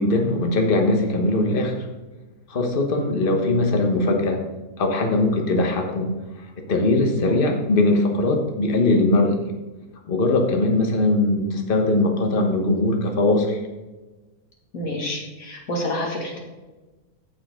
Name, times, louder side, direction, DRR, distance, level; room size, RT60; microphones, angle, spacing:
voice 1, 0.0-1.9 2.5-4.4 4.8-6.1 6.7-9.4 10.1-13.6, left 2 dB, 40° left, 3 dB, 1.3 m, -20 dB
voice 2, 14.7-16.4, left 1 dB, 70° left, -1 dB, 2.4 m, -28 dB
15.0 x 5.2 x 3.7 m, 1.2 s
omnidirectional pair, 1.5 m